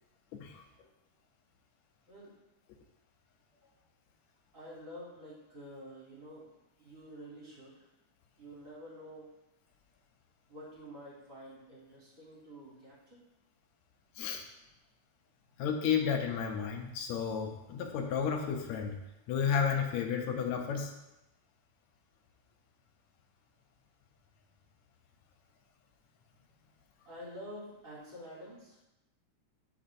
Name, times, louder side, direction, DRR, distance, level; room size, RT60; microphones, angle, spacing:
voice 1, 4.5-6.5 6.8-7.8 8.4-9.3 10.5-13.2 27.0-28.9, equal, 25° right, -7 dB, 3.2 m, -49 dB
voice 2, 15.6-19.0 19.3-20.9, left 7 dB, 75° left, 3 dB, 1.9 m, -32 dB
13.0 x 5.3 x 2.6 m, 0.94 s
omnidirectional pair, 3.5 m